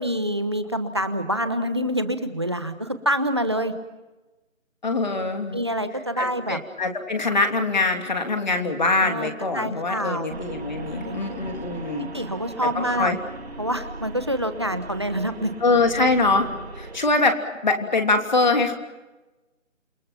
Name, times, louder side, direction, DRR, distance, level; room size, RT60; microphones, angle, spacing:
voice 1, 0.0-3.7 5.5-6.6 9.0-10.4 10.9-11.4 11.9-13.1 13.6-15.5, equal, 20° right, 9 dB, 1.1 m, -27 dB
voice 2, 4.8-5.6 6.2-12.1 12.6-12.7 13.0-13.2 15.6-16.5 16.7-18.7, left 3 dB, 35° left, 4 dB, 3.0 m, -23 dB
sound 1, 10.3-17.0, right 2 dB, 50° right, 2.5 m, -38 dB
28.5 x 27.0 x 5.9 m, 1.1 s
figure-of-eight pair, 180°, 40 cm